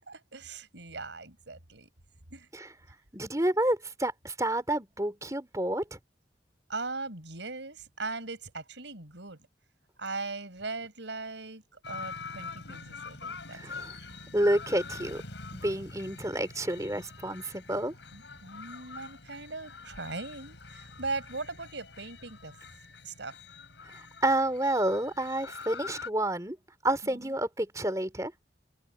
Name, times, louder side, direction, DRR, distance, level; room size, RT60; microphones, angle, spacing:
voice 1, 0.1-1.9 2.3-2.5 6.7-9.4 10.0-14.3 18.1-22.6 23.0-23.4 27.1-27.3, right 3 dB, 85° right, 4.9 m, -39 dB
voice 2, 3.1-6.0 13.5-13.9 14.3-15.2 15.5-17.9 23.9-26.6 26.8-28.3, right 1 dB, 20° right, 3.7 m, -29 dB
sound 1, 11.8-26.1, left 4 dB, 80° left, 5.2 m, -44 dB
head